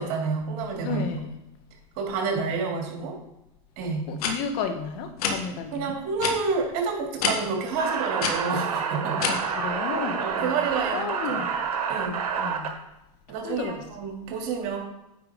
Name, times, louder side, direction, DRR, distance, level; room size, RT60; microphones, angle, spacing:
voice 1, 0.0-1.1 2.0-3.1 3.8-4.1 5.7-9.3 10.2-11.4 11.9-12.2 13.3-14.8, right 4 dB, 60° right, -1 dB, 3.2 m, -29 dB
voice 2, 0.8-1.3 4.1-6.0 9.3-11.5 12.4-12.7 13.4-13.8, left 6 dB, 60° left, 6 dB, 1.4 m, -33 dB
sound 1, 4.2-4.3 5.2-5.4 6.2-6.4 7.2-7.3 8.2-8.3 9.2-9.3, left 6 dB, 75° left, 1.5 m, -25 dB
sound 2, 7.8-12.7, right 6 dB, 85° right, 1.5 m, -28 dB
9.5 x 5.6 x 3.8 m, 0.88 s
hypercardioid pair, 105°, 19 cm